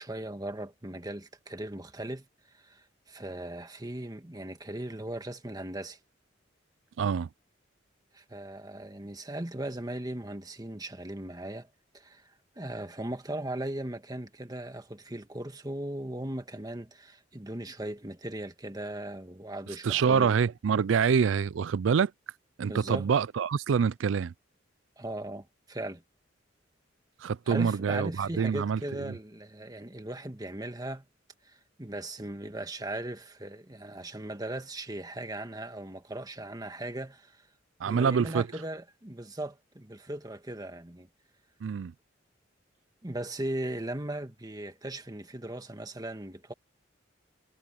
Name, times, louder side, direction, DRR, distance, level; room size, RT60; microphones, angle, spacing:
voice 1, 0.0-2.2 2.5-6.0 8.1-11.7 11.9-20.4 22.7-23.1 25.0-26.0 27.5-31.0 31.4-37.4 37.8-41.1 43.0-46.5, right 1 dB, 20° right, 1.7 m, -38 dB
voice 2, 7.0-7.3 19.8-22.1 22.6-24.3 27.2-29.1 37.8-38.4 41.6-41.9, right 6 dB, 80° right, 0.4 m, -26 dB
head